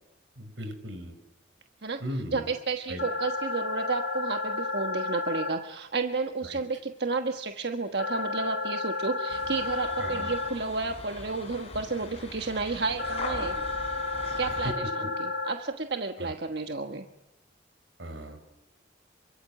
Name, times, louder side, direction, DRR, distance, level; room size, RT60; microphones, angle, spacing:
voice 1, 0.4-1.1 2.0-2.5 2.9-3.0 6.5-6.6 10.0-10.3 16.2-16.3 18.0-18.4, equal, 85° right, 8 dB, 5.7 m, -37 dB
voice 2, 1.8-13.5 14.4-17.0, right 3 dB, 60° right, 6 dB, 1.3 m, -32 dB
sound 1, 3.0-5.5 8.0-10.5 13.0-15.5, left 3 dB, 70° left, 5.8 m, -32 dB
sound 2, 9.3-14.7, left 2 dB, 35° left, 6.4 m, -41 dB
27.5 x 24.0 x 8.9 m, 0.90 s
head